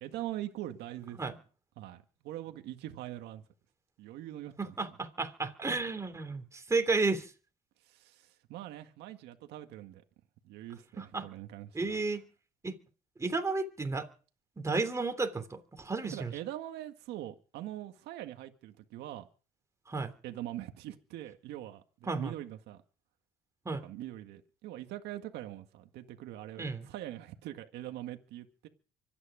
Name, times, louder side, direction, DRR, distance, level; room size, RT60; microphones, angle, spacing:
voice 1, 0.0-1.2 1.8-3.4 4.0-4.7 7.9-10.0 10.4-12.0 16.1-19.3 20.2-22.8 23.8-28.7, right 13 dB, 85° right, 1.8 m, -43 dB
voice 2, 4.6-7.3 11.0-11.3 11.7-12.2 12.6-12.8 13.2-14.1 14.6-16.3 19.9-20.1 22.1-22.3 23.6-23.9 26.6-26.9, right 3 dB, 15° right, 3.3 m, -32 dB
25.0 x 9.8 x 5.0 m
cardioid pair, 110°, 17 cm